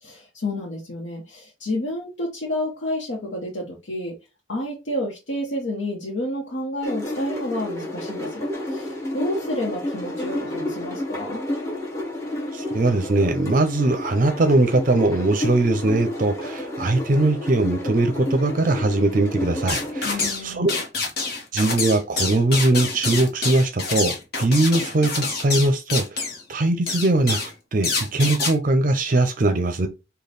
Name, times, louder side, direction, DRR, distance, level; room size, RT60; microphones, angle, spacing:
voice 1, 0.0-4.2 4.5-11.4 20.0-20.8, left 1 dB, 75° left, 1.0 m, -30 dB
sound 1, 6.8-20.2, left 1 dB, 15° left, 0.9 m, -30 dB
voice 2, 12.5-20.7 21.5-29.9, right 2 dB, 45° right, 0.5 m, -21 dB
sound 2, 19.7-20.4 20.7-26.4 26.9-27.5 27.8-28.5, left 4 dB, 55° left, 1.1 m, -26 dB
5.1 x 2.3 x 3.9 m
head